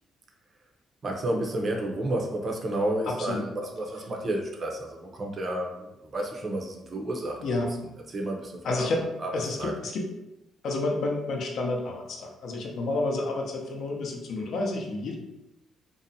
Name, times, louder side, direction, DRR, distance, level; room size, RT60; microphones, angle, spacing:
voice 1, 1.0-7.5 8.1-8.9 9.2-9.3 9.6-9.7, right 1 dB, 40° right, 1 dB, 0.5 m, -31 dB
voice 2, 3.1-3.5 7.4-7.7 8.6-9.1 9.3-10.1 10.6-15.2, left 2 dB, 70° left, 1 dB, 0.5 m, -30 dB
2.6 x 2.0 x 2.6 m, 0.93 s
cardioid pair, 90°, 0 cm